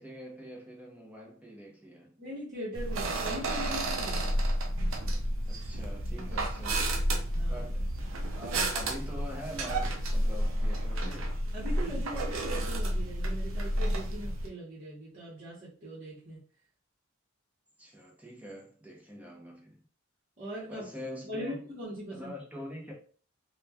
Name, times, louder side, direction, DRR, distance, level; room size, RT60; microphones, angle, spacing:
voice 1, 0.0-2.2 5.4-7.0 7.5-8.1 8.4-11.4 17.8-19.8 20.7-21.6 22.1-22.9, equal, 5° right, 0.6 m, -44 dB
voice 2, 2.2-4.2 7.3-7.7 11.5-16.4 20.4-20.9 21.2-22.3, equal, 45° right, 0.9 m, -41 dB
sound 1, 2.7-14.5, right 1 dB, 70° right, 0.5 m, -31 dB
3.0 x 2.1 x 2.3 m
head